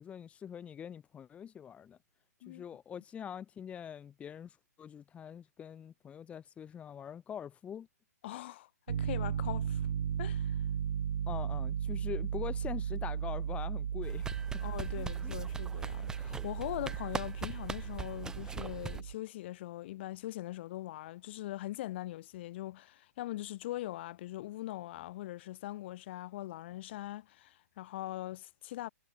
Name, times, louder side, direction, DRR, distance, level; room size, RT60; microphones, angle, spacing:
voice 1, 0.0-2.0 2.5-7.9 11.3-14.6 15.0-15.4, left 8 dB, 15° left, 2.3 m, -44 dB
voice 2, 8.2-9.9 10.2-10.5 14.6-28.9, left 15 dB, 40° left, 2.9 m, -41 dB
Piano, 8.9-19.1, right 8 dB, 55° right, 1.5 m, -36 dB
sound 1, 14.0-19.0, right 4 dB, 5° right, 6.7 m, -42 dB
figure-of-eight pair, 130°, 9 cm